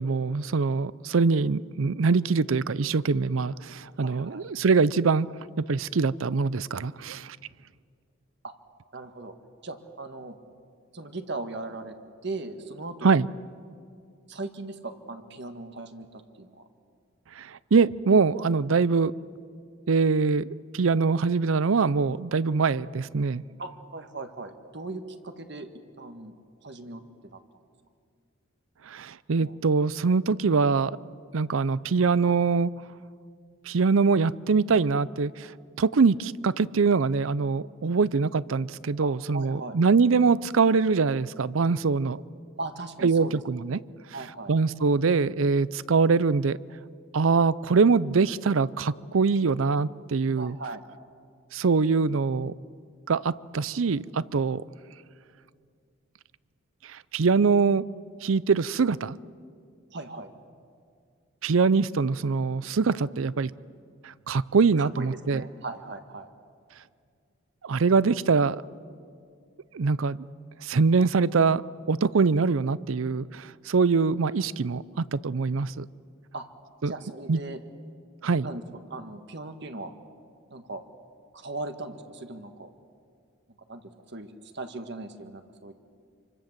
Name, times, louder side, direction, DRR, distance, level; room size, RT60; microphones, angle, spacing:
voice 1, 0.0-5.3 5.7-7.4 13.0-13.3 17.4-19.1 19.9-23.4 28.9-31.0 31.3-32.7 33.7-35.5 35.8-42.2 43.0-43.8 44.5-46.6 47.1-50.6 51.5-52.5 53.1-54.6 56.9-57.8 58.2-59.2 61.4-63.5 64.0-65.4 67.6-68.6 69.7-70.2 70.6-71.6 71.9-74.8 75.1-75.9 76.8-76.9 77.3-77.4 78.2-78.5, right 4 dB, 80° right, 20 dB, 0.5 m, -23 dB
voice 2, 4.0-4.4 8.4-8.5 8.9-9.3 9.6-10.4 10.9-11.9 12.2-13.1 14.3-16.7 23.6-25.7 26.0-26.3 26.6-27.4 29.4-29.5 39.0-39.8 42.6-43.7 44.1-44.5 50.3-50.8 59.9-60.3 64.8-66.3 76.3-76.5 76.8-77.6 78.4-78.6 78.9-79.9 80.5-80.8 81.3-82.7 83.7-83.8 84.1-85.7, right 2 dB, 55° right, 8 dB, 1.6 m, -38 dB
27.0 x 25.0 x 7.4 m, 2.2 s
head